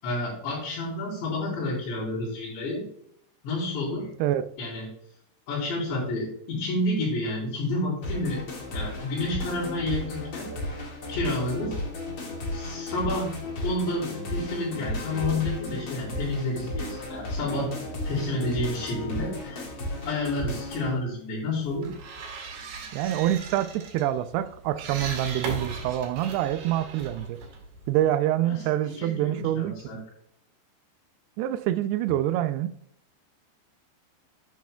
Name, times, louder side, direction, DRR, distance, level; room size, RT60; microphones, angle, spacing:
voice 1, 0.0-2.8 3.4-4.1 4.6-4.9 5.5-8.4 8.7-10.5 11.1-11.8 12.5-13.3 13.6-17.7 18.0-19.6 20.0-21.9 28.4-30.0, left 2 dB, 75° left, -10 dB, 6.5 m, -30 dB
sound 1, 8.0-20.9, left 1 dB, 50° left, 1.5 m, -34 dB
sound 2, 21.6-28.1, right 3 dB, 65° right, 3.6 m, -38 dB
voice 2, 22.9-27.4 27.9-30.0 31.4-32.7, right 12 dB, 85° right, 10 dB, 2.3 m, -26 dB
11.5 x 9.4 x 2.3 m, 0.66 s
omnidirectional pair, 5.1 m